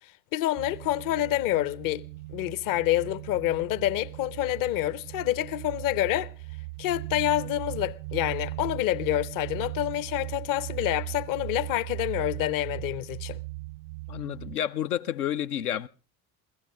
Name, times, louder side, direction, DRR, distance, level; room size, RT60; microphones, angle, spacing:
voice 1, 0.3-6.3 6.8-13.4, left 14 dB, 45° left, 0.8 m, -27 dB
sound 1, 0.6-14.6, right 21 dB, 70° right, 0.7 m, -38 dB
voice 2, 14.1-15.9, left 10 dB, 75° left, 0.7 m, -30 dB
28.5 x 16.5 x 2.4 m
figure-of-eight pair, 60°, 45 cm